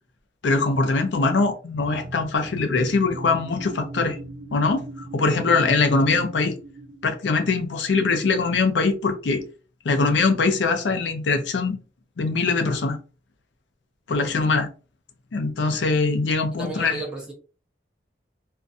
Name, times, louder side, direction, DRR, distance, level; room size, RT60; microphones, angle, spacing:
voice 1, 0.4-4.2 4.5-4.9 5.1-6.5 7.0-9.4 9.8-11.8 12.2-13.0 14.1-14.7 15.3-17.0, left 3 dB, 80° left, 0.5 m, -22 dB
sound 1, 1.7-7.2, right 2 dB, 60° right, 0.7 m, -39 dB
voice 2, 16.5-17.3, right 3 dB, 5° right, 0.7 m, -33 dB
2.5 x 2.2 x 2.6 m
head